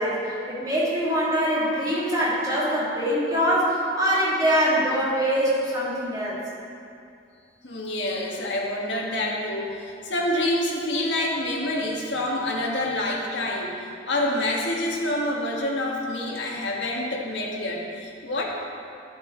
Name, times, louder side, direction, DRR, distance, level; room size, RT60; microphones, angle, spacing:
voice 1, 0.0-6.4, equal, 20° right, -8 dB, 2.3 m, -23 dB
voice 2, 7.6-18.5, left 1 dB, 65° left, -2 dB, 1.6 m, -27 dB
11.5 x 7.8 x 3.9 m, 2.5 s
head